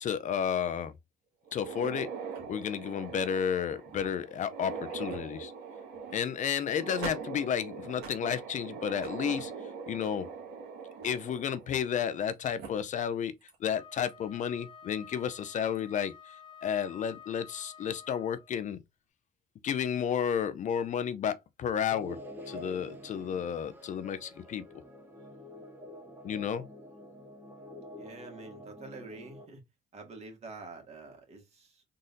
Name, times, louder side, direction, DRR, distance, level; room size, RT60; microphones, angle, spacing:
voice 1, 0.0-0.9 1.5-2.1 2.5-5.5 6.1-9.5 9.9-10.3 11.0-13.3 13.6-16.1 16.6-18.8 19.6-22.2 22.5-24.6 26.2-26.6, left 8 dB, 45° left, 0.5 m, -32 dB
sound 1, 1.5-12.2 12.6-12.7 13.5-13.6 14.1-14.2 15.5-15.8, right 5 dB, 75° right, 1.7 m, -42 dB
Wind instrument woodwind instrument, 13.7-18.6, left 7 dB, 30° left, 1.0 m, -51 dB
sound 2, 21.9-29.4, left 1 dB, 10° right, 1.1 m, -47 dB
voice 2, 28.0-29.6 29.9-31.8, right 3 dB, 40° right, 1.9 m, -47 dB
3.9 x 3.8 x 2.6 m
cardioid pair, 110°, 17 cm